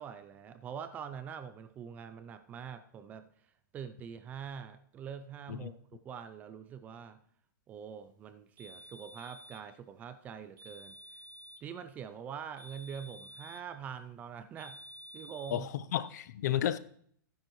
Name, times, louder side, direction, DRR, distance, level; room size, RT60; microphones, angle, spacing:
voice 1, 0.0-7.2 7.7-11.0 11.6-14.8 15.1-15.7, right 7 dB, 15° right, 10 dB, 0.4 m, -44 dB
sound 1, 8.6-9.7 10.6-11.7 12.6-13.7 14.6-15.7, equal, 75° right, 4.2 m, -51 dB
voice 2, 15.5-16.8, left 11 dB, 50° left, 15 dB, 0.6 m, -32 dB
14.0 x 10.0 x 3.1 m, 0.62 s
hypercardioid pair, 165°, 11 cm